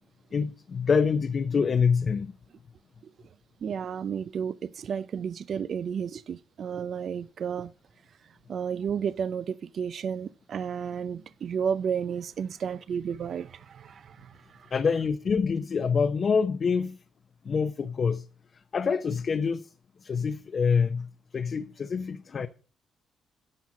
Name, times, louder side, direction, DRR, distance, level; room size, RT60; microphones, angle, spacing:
voice 1, 0.3-2.3 14.7-17.0 17.4-18.2 18.5-19.7 20.0-22.5, left 5 dB, 45° left, 0.7 m, -26 dB
voice 2, 3.6-7.7 8.2-14.7, right 7 dB, 55° right, 0.4 m, -32 dB
10.5 x 5.6 x 7.4 m
cardioid pair, 90°, 0 cm